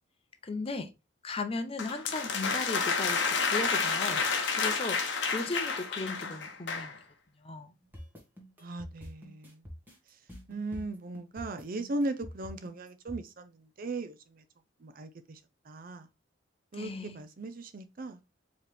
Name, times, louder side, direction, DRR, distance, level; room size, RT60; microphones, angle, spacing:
voice 1, 0.4-0.9 1.2-4.3 4.5-7.0 7.4-7.7 16.7-17.2, left 3 dB, 30° left, 0.6 m, -36 dB
sound 1, 1.8-7.0, left 5 dB, 60° left, 0.9 m, -30 dB
sound 2, 7.9-13.2, equal, 10° right, 1.4 m, -46 dB
voice 2, 8.6-9.6 10.5-14.4 14.8-15.4 15.7-16.1 16.7-18.2, right 2 dB, 45° right, 0.5 m, -38 dB
4.7 x 3.1 x 3.3 m
head